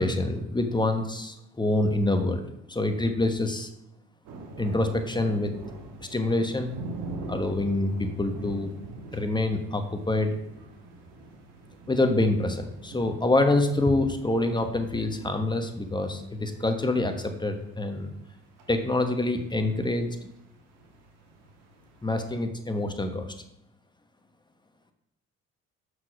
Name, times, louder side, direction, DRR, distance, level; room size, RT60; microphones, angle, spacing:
voice 1, 0.0-2.4 2.7-3.7 4.6-5.5 6.1-6.7 7.3-8.7 9.1-10.4 11.9-18.1 18.7-20.1 22.0-23.3, left 2 dB, 15° left, 6 dB, 1.2 m, -26 dB
sound 1, 4.2-22.4, right 2 dB, 85° right, 1.3 m, -44 dB
5.9 x 4.9 x 6.0 m, 0.83 s
supercardioid pair, 70°, 32 cm